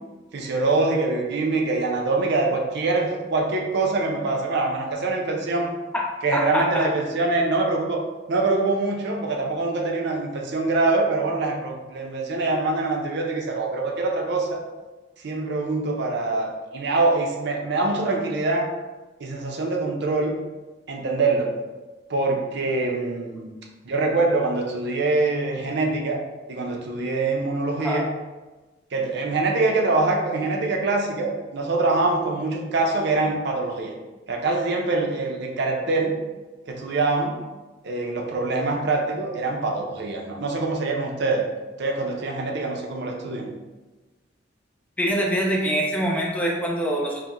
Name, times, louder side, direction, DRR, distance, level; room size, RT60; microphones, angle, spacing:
voice 1, 0.3-5.7 6.2-8.0 8.3-14.6 15.2-18.7 19.2-20.4 20.9-21.5 22.1-23.5 23.8-26.2 26.5-28.1 28.9-33.9 34.3-36.2 36.7-37.4 37.8-41.4 41.8-43.5, right 3 dB, 65° right, 1 dB, 0.5 m, -24 dB
voice 2, 5.9-6.9 27.8-28.1 45.0-47.2, equal, 10° left, -3 dB, 0.5 m, -24 dB
4.5 x 2.1 x 2.5 m, 1.2 s
head